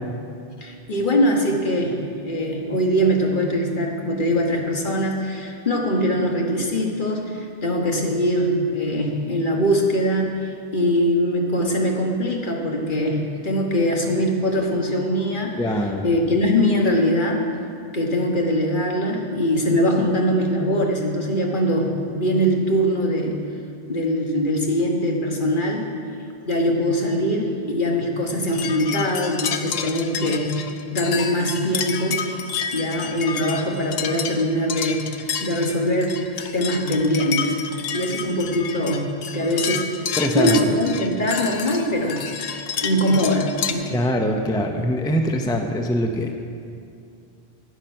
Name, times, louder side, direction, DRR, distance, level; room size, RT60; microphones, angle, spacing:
voice 1, 0.6-2.0 2.2-15.7 16.0-17.4 17.9-23.4 23.9-25.9 26.5-30.5 30.9-32.2 32.7-35.1 35.4-37.6 37.9-39.0 39.3-39.9 40.3-42.2 42.8-43.9, equal, 50° left, 0 dB, 1.5 m, -22 dB
voice 2, 15.6-16.1 40.2-40.6 43.9-46.3, equal, 5° left, 4 dB, 0.6 m, -23 dB
sound 1, 28.5-43.7, left 7 dB, 70° left, 0.9 m, -30 dB
12.0 x 8.9 x 5.5 m, 2.4 s
omnidirectional pair, 1.1 m